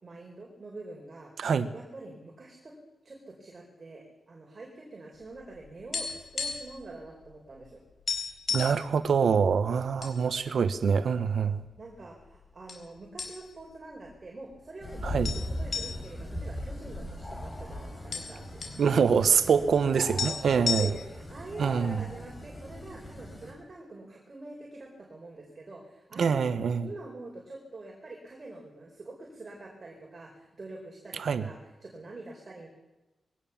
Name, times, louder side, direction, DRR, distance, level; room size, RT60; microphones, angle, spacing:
voice 1, 0.0-1.3 1.7-2.7 3.0-7.8 11.8-18.6 19.4-19.6 19.9-26.5 26.8-32.7, right 2 dB, 35° right, 0 dB, 4.6 m, -45 dB
sound 1, 5.4-6.8 7.1-7.3 7.6-7.7 8.1-8.8 9.5-10.2 10.5-10.7 11.4-12.0 12.7-12.9 13.2-13.7 14.1-14.2 15.2-17.3 17.6-17.7 17.9-18.8 19.9-20.0 20.2-21.2, left 5 dB, 55° left, 3.9 m, -33 dB
voice 2, 8.5-11.6 15.0-15.3 18.8-20.9 21.6-22.0 26.2-26.9 31.2-31.4, right 6 dB, 70° right, 12 dB, 1.2 m, -25 dB
sound 2, 14.8-23.5, left 1 dB, 20° left, 4.9 m, -39 dB
21.5 x 18.0 x 7.3 m, 1.0 s
wide cardioid pair, 165°, 0 cm